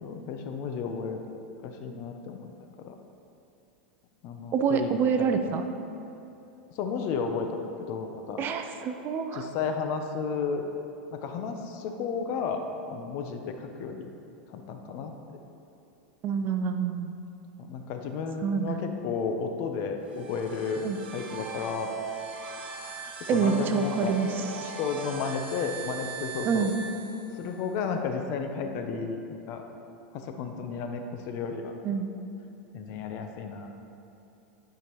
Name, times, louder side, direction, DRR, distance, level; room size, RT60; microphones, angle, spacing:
voice 1, 0.0-1.3 1.6-2.5 2.8-2.9 4.2-5.5 6.7-8.4 9.3-10.7 11.1-14.1 14.5-15.4 17.6-20.9 21.1-21.9 23.3-24.1 24.6-26.7 27.3-29.2 29.5-29.6 30.1-31.7 32.7-33.7, left 5 dB, 50° left, 5 dB, 0.7 m, -33 dB
voice 2, 4.5-5.6 8.4-9.5 16.2-17.1 18.4-18.8 20.8-21.0 23.3-24.7 26.4-26.7 31.8-32.1, right 6 dB, 40° right, 7 dB, 0.5 m, -27 dB
sound 1, 20.0-27.7, right 4 dB, 85° right, 1.2 m, -40 dB
11.0 x 5.1 x 3.0 m, 2.8 s
hypercardioid pair, 110°, 6 cm